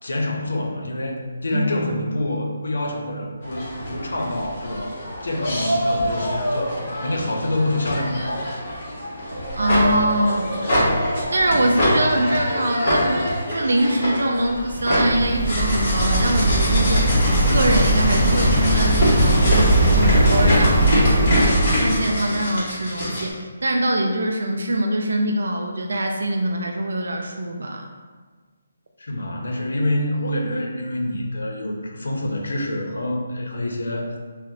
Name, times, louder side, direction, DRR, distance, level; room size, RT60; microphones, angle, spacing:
voice 1, 0.0-5.0 5.2-6.7 7.0-8.5 29.0-34.1, left 1 dB, 90° left, 0 dB, 0.6 m, -26 dB
sound 1, 3.4-23.3, equal, 30° left, 0.8 m, -25 dB
voice 2, 9.5-10.5 11.3-17.1 17.5-27.9, right 1 dB, 80° right, 2 dB, 0.3 m, -23 dB
Waves surf, 14.4-22.1, right 1 dB, ahead, 0.6 m, -19 dB
3.9 x 2.0 x 2.7 m, 1.5 s
hypercardioid pair, 175°, 0 cm